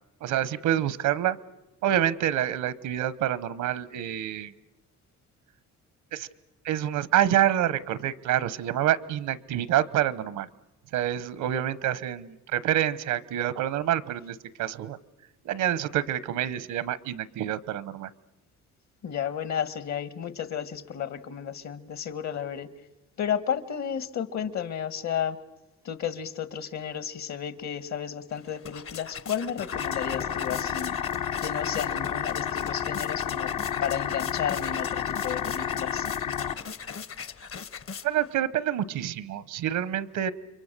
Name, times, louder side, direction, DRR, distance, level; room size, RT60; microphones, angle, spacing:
voice 1, 0.2-1.4 1.8-4.5 6.1-6.3 6.6-10.5 10.9-15.0 15.4-18.1 38.0-40.3, right 11 dB, 85° right, 18 dB, 1.0 m, -27 dB
voice 2, 19.0-22.7 23.2-25.4 25.8-31.0 31.4-33.5 33.8-36.1, left 8 dB, 65° left, 14 dB, 1.6 m, -32 dB
sound 1, 28.3-38.4, left 6 dB, 45° left, 0.9 m, -40 dB
sound 2, 29.7-36.5, left 9 dB, 80° left, 1.3 m, -31 dB
30.0 x 23.5 x 6.7 m, 0.98 s
cardioid pair, 90°, 30 cm